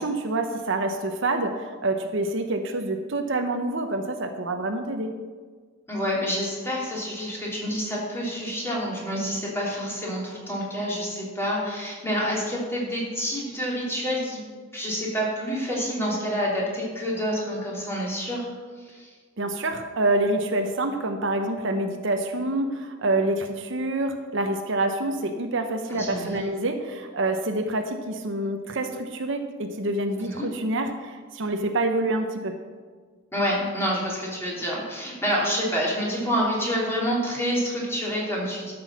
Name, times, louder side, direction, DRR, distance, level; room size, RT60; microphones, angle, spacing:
voice 1, 0.0-5.1 19.4-32.5, right 2 dB, 65° right, 5 dB, 0.9 m, -27 dB
voice 2, 5.9-14.4 14.7-18.5 18.8-19.1 25.9-26.5 30.2-30.5 33.3-38.7, equal, 15° left, -5 dB, 3.0 m, -28 dB
12.5 x 6.3 x 6.1 m, 1.5 s
head